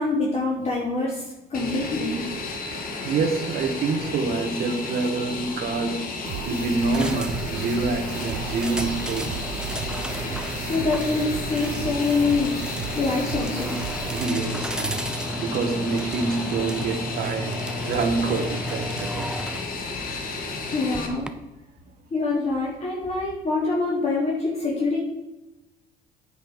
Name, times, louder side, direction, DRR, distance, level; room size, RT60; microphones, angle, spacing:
voice 1, 0.0-2.3 10.7-12.6 12.9-13.8 20.6-21.3 22.1-25.0, left 3 dB, 40° left, -5 dB, 3.3 m, -25 dB
Fixed-wing aircraft airplane, 1.5-21.1, left 3 dB, 55° left, 2.0 m, -33 dB
voice 2, 3.0-6.1 6.4-9.4 14.1-15.0 15.4-19.3, right 4 dB, 65° right, 5 dB, 1.5 m, -27 dB
sound 1, 6.2-14.2, right 12 dB, 90° right, 0.6 m, -36 dB
sound 2, 6.9-21.3, right 1 dB, 5° right, 0.8 m, -34 dB
9.6 x 8.2 x 5.3 m, 1.0 s
cardioid pair, 110°, 17 cm